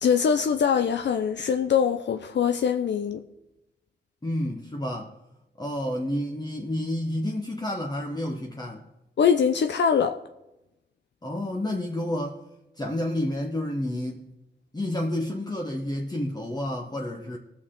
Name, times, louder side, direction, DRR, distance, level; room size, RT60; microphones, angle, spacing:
voice 1, 0.0-3.2 9.2-10.2, left 7 dB, 75° left, 0.6 m, -23 dB
voice 2, 4.2-5.1 5.6-8.8 11.2-12.4 12.8-14.3 14.7-17.4, left 1 dB, 20° left, 1.1 m, -30 dB
19.0 x 6.7 x 3.8 m
cardioid pair, 65°, 18 cm